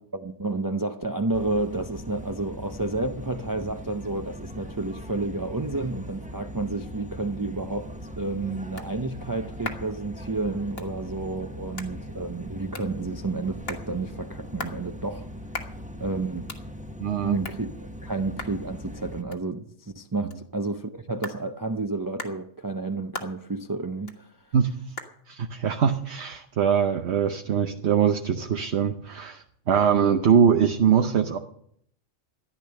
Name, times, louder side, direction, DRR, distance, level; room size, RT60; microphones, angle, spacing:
voice 1, 0.1-15.3 15.6-15.7 16.0-16.5 17.2-24.3, right 3 dB, 25° right, 0.5 m, -31 dB
sound 1, 1.3-19.2, equal, 5° right, 1.0 m, -40 dB
sound 2, 9.2-27.2, left 2 dB, 55° left, 1.7 m, -44 dB
voice 2, 17.0-17.4 24.5-24.7 25.3-31.4, right 7 dB, 65° right, 1.1 m, -22 dB
14.5 x 10.5 x 6.6 m
omnidirectional pair, 1.2 m